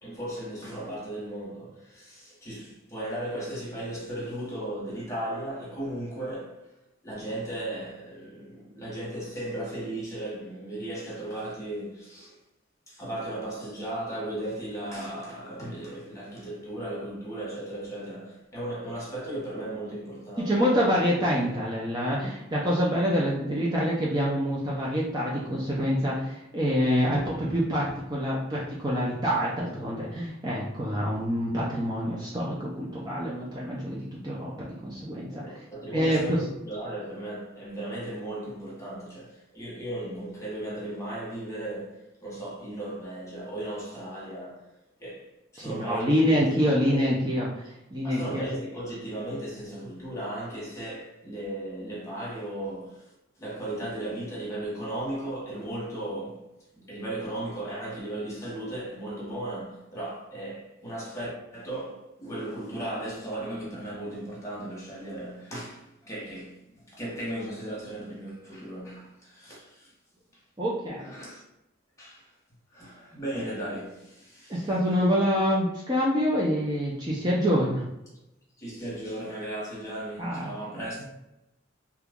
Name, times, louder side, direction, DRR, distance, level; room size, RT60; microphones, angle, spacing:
voice 1, 0.0-6.7 7.0-12.4 12.9-20.8 35.3-44.7 45.0-47.1 48.0-53.1 53.4-69.9 70.9-71.4 72.0-72.3 72.7-74.7 78.6-81.0, right 1 dB, 15° left, 1.0 m, -36 dB
voice 2, 20.4-35.4 35.9-36.4 45.6-48.4 70.6-71.0 74.5-77.8 80.2-80.5, equal, 20° right, 0.4 m, -26 dB
2.9 x 2.3 x 3.5 m
head